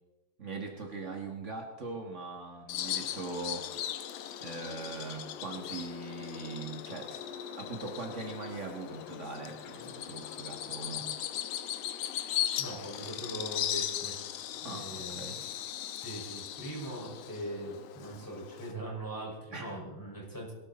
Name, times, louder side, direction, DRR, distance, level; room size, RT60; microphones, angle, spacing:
voice 1, 0.4-3.7 4.4-7.1 7.6-11.1 14.6-15.4 19.5-19.7, right 3 dB, 60° right, 2 dB, 0.7 m, -41 dB
Bird vocalization bird call bird song, 2.7-18.7, left 11 dB, 90° left, 1.4 m, -38 dB
voice 2, 12.6-14.2 14.6-15.4 16.0-20.5, right 1 dB, 5° left, -3 dB, 5.8 m, -41 dB
22.0 x 13.0 x 4.3 m, 1.1 s
omnidirectional pair, 4.0 m